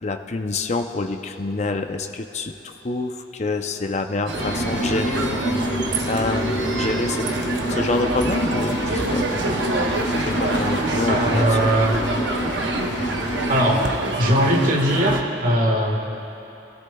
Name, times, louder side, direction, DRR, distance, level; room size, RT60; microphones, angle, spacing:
voice 1, 0.0-2.5 2.8-5.4 6.1-7.3 7.7-9.2 10.2-11.7, left 3 dB, 40° left, 6 dB, 0.6 m, -27 dB
sound 1, 4.3-15.2, right 3 dB, 70° right, 0.8 m, -27 dB
sound 2, 4.4-13.8, equal, 65° left, 2.2 m, -27 dB
voice 2, 11.1-12.0 13.5-13.9 14.2-16.0, equal, 45° right, 0 dB, 1.6 m, -20 dB
23.0 x 13.5 x 2.3 m, 3.0 s
head